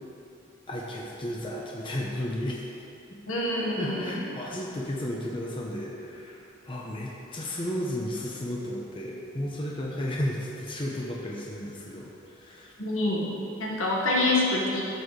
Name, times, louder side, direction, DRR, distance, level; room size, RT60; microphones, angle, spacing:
voice 1, 0.7-2.7 3.8-12.7, left 1 dB, 25° left, -3 dB, 0.9 m, -33 dB
voice 2, 3.3-4.2 12.8-14.8, left 2 dB, 75° left, -4 dB, 1.7 m, -26 dB
12.5 x 6.9 x 3.3 m, 2.9 s
head